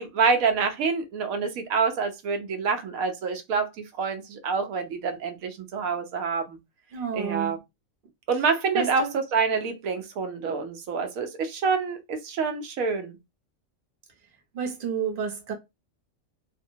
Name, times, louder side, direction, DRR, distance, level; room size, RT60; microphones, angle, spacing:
voice 1, 0.0-3.7 4.0-6.6 7.1-7.6 8.3-9.1 9.3-13.2, right 5 dB, 90° right, 1.1 m, -27 dB
voice 2, 6.9-7.6 8.7-9.2 14.5-15.5, right 6 dB, 50° right, 0.8 m, -30 dB
2.7 x 2.2 x 2.6 m
omnidirectional pair, 1.4 m